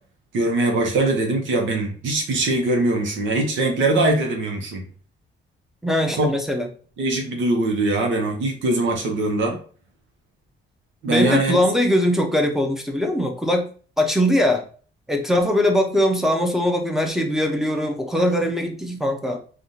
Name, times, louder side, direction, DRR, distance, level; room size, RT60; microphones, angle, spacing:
voice 1, 0.3-4.8 6.2-6.3 7.0-9.6 11.0-11.6, right 2 dB, 75° right, 2 dB, 1.0 m, -22 dB
voice 2, 5.8-6.7 11.1-13.7 14.0-14.6 15.1-19.4, left 1 dB, ahead, 3 dB, 0.7 m, -21 dB
3.5 x 2.5 x 2.7 m, 0.41 s
cardioid pair, 90°, 20 cm